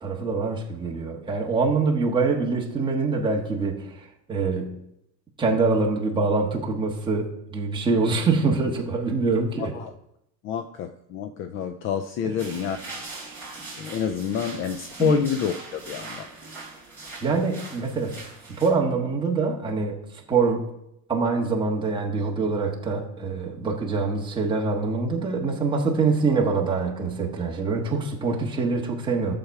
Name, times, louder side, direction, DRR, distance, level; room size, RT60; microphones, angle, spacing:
voice 1, 0.0-4.8 5.4-9.7 13.3-13.4 15.0-15.2 17.2-18.2 18.5-20.6 21.1-29.3, right 4 dB, 15° right, -1 dB, 1.4 m, -25 dB
voice 2, 9.6-9.9 10.4-12.8 13.8-16.3, left 8 dB, 35° left, 10 dB, 0.4 m, -28 dB
sound 1, 12.4-18.7, right 3 dB, 5° left, 3.2 m, -41 dB
12.5 x 6.9 x 4.6 m, 0.82 s
cardioid pair, 175°, 36 cm